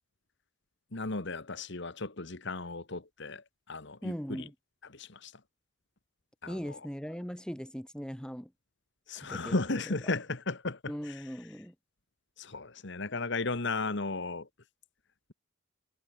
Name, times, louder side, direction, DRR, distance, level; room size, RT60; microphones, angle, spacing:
voice 1, 0.9-4.5 4.8-5.4 6.4-6.9 9.1-11.3 12.4-14.5, left 3 dB, 60° left, 1.6 m, -35 dB
voice 2, 4.0-4.5 6.5-8.5 9.3-9.6 10.9-11.7, equal, 5° left, 6.9 m, -39 dB
head